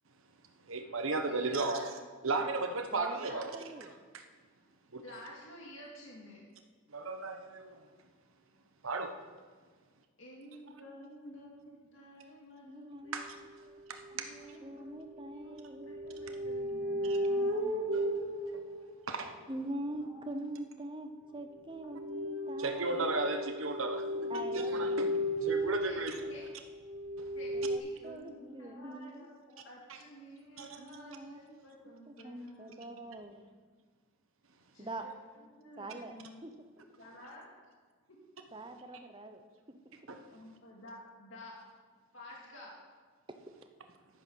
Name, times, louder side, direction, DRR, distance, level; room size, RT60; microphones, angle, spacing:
voice 1, 0.7-1.9 2.2-3.5 4.9-5.0 6.9-7.7 8.8-9.1 13.1-13.3 13.9-14.3 17.0-17.2 17.9-18.1 19.1-19.3 22.6-24.0 24.3-25.1 25.4-26.2 30.6-30.8 40.1-40.2, right 3 dB, 80° right, 6 dB, 1.1 m, -34 dB
voice 2, 1.3-1.8 3.1-3.5 5.0-6.4 10.2-13.8 14.1-18.1 19.9-20.1 25.8-26.4 27.3-33.3 34.7-35.1 35.6-36.5 37.0-37.5 38.1-38.2 40.3-41.6 42.1-42.8, left 1 dB, 70° left, -3 dB, 2.1 m, -52 dB
voice 3, 3.5-4.0 12.6-13.2 14.1-14.2 14.6-16.0 17.2-18.0 19.5-23.2 24.3-25.0 27.5-29.3 30.8-31.4 31.8-33.4 34.8-35.0 35.8-36.2 36.4-36.7 38.5-40.1, right 1 dB, 25° right, 7 dB, 0.8 m, -44 dB
sound 1, 13.2-13.3 14.0-14.2 15.1-19.6 21.8-27.8, equal, 60° right, 2.0 m, -35 dB
11.0 x 9.1 x 6.2 m, 1.5 s
head